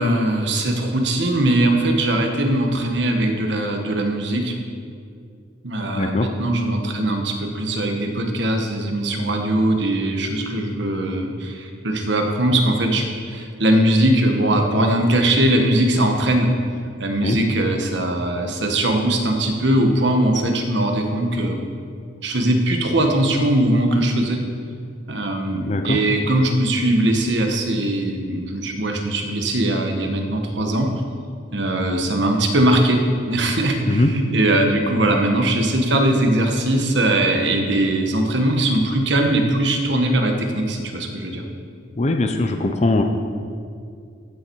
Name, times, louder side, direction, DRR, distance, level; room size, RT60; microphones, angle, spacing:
voice 1, 0.0-4.5 5.6-16.5 17.0-21.7 22.2-24.4 25.1-30.9 31.5-41.4, right 1 dB, 60° right, 3 dB, 1.3 m, -20 dB
voice 2, 5.9-6.3 17.2-17.4 25.7-26.0 33.9-34.1 42.0-43.0, left 2 dB, 35° left, 5 dB, 0.6 m, -20 dB
15.0 x 7.0 x 4.7 m, 2.3 s
head